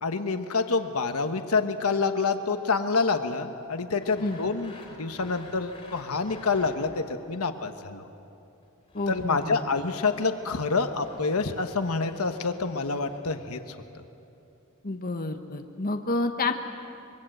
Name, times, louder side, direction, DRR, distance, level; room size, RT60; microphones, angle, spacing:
voice 1, 0.0-4.7 5.0-8.1 9.1-14.0, left 4 dB, 80° left, 8 dB, 1.1 m, -27 dB
Sawing, 4.0-7.2 8.6-13.2, left 2 dB, 25° left, 3.2 m, -50 dB
voice 2, 8.9-9.7 14.8-16.5, left 2 dB, 40° left, 5 dB, 1.1 m, -29 dB
25.0 x 23.0 x 7.9 m, 2.7 s
head